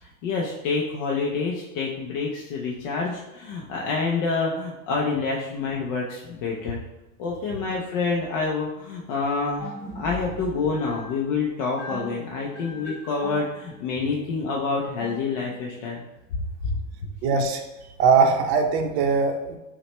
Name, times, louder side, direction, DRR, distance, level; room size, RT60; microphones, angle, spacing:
voice 1, 0.0-6.8 7.2-16.0 16.6-16.7, left 4 dB, 35° left, -2 dB, 0.4 m, -27 dB
sound 1, 9.6-15.8, left 1 dB, 5° right, 1.3 m, -40 dB
voice 2, 17.2-17.6 18.0-19.6, right 5 dB, 50° right, 4 dB, 0.7 m, -20 dB
5.6 x 2.2 x 2.9 m, 1.0 s
supercardioid pair, 155°, 41 cm